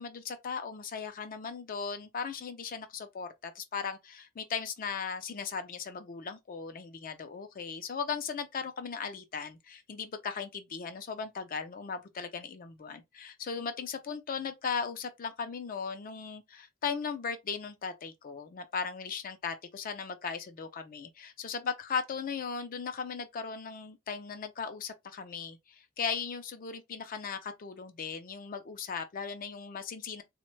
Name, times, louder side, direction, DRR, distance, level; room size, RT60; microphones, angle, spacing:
voice 1, 0.0-30.2, left 6 dB, 45° left, 0.4 m, -37 dB
3.3 x 2.1 x 3.0 m
head